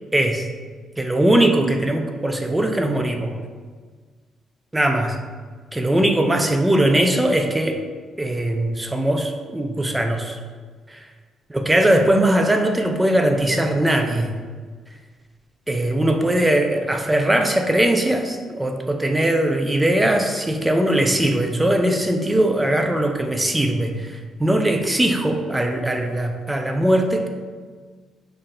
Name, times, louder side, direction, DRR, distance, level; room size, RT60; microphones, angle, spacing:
voice 1, 0.1-0.5 1.0-3.4 4.7-5.2 5.7-7.8 8.2-10.4 10.9-11.1 11.5-14.4 15.7-27.3, right 1 dB, 15° right, 4 dB, 0.4 m, -20 dB
5.7 x 2.6 x 2.2 m, 1.5 s
cardioid pair, 90°, 0 cm